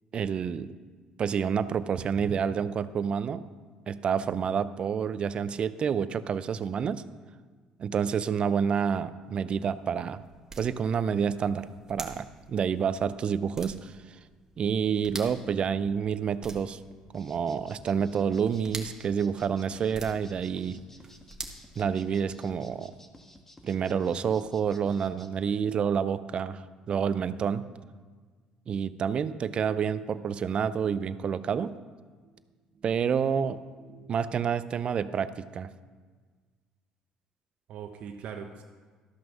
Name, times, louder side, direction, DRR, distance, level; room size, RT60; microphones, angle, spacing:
voice 1, 0.1-0.7 1.2-3.4 3.9-7.0 7.8-10.2 10.6-14.2 14.6-16.8 17.1-20.8 21.8-22.9 23.6-27.7 28.7-31.7 32.8-33.6 34.1-35.7, right 7 dB, 50° right, 14 dB, 0.6 m, -28 dB
sound 1, 9.3-22.5, right 3 dB, 25° right, 1.7 m, -47 dB
sound 2, 17.1-25.3, left 1 dB, 15° left, 1.4 m, -53 dB
voice 2, 33.8-34.2 37.7-38.6, right 7 dB, 65° right, 3 dB, 0.9 m, -42 dB
13.0 x 6.0 x 6.1 m, 1.5 s
supercardioid pair, 75°, 2 cm